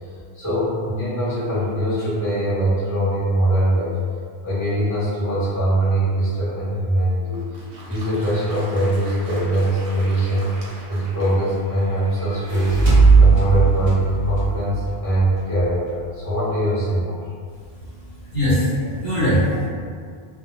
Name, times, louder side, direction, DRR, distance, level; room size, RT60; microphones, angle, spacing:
voice 1, 0.3-4.0 4.4-7.6 7.9-10.5 10.9-12.8 13.2-17.2, right 1 dB, 20° left, -12 dB, 0.7 m, -22 dB
Applause, 7.3-12.2, right 1 dB, 70° right, 0.8 m, -40 dB
sound 1, 12.2-15.6, right 4 dB, 30° right, 0.7 m, -17 dB
voice 2, 17.5-19.7, equal, 45° left, -12 dB, 1.1 m, -22 dB
2.2 x 2.1 x 3.0 m, 2.1 s
omnidirectional pair, 1.0 m